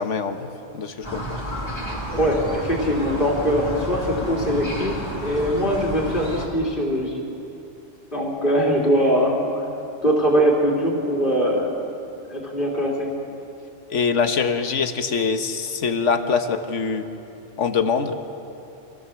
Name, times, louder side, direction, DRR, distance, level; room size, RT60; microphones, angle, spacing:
voice 1, 0.0-1.4 13.9-17.1 17.6-18.2, left 5 dB, 70° left, 7 dB, 1.5 m, -24 dB
sound 1, 1.0-6.5, equal, 20° left, 2.7 m, -31 dB
voice 2, 2.1-7.2 8.1-9.7 10.0-11.7 12.3-13.1, equal, 40° left, -3 dB, 3.3 m, -22 dB
26.5 x 16.0 x 7.0 m, 2.8 s
omnidirectional pair, 1.3 m